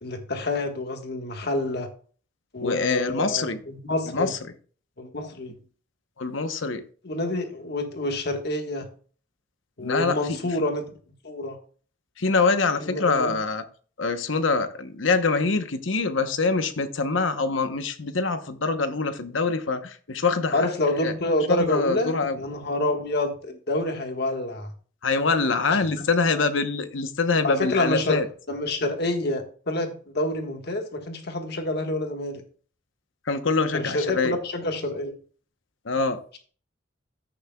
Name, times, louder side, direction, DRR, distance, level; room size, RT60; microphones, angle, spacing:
voice 1, 0.0-1.9 2.5-4.3 5.0-5.6 7.0-8.9 9.8-10.9 11.2-11.6 12.8-13.4 20.5-24.7 25.7-25.8 27.4-32.4 33.7-35.1, left 1 dB, 55° left, 1.5 m, -28 dB
voice 2, 2.6-3.6 4.1-4.4 6.2-6.8 9.8-10.2 12.2-13.6 14.0-20.7 21.0-21.1 21.5-22.4 25.0-28.3 33.3-34.4 35.8-36.2, left 4 dB, 75° left, 0.9 m, -24 dB
14.5 x 6.6 x 2.3 m
head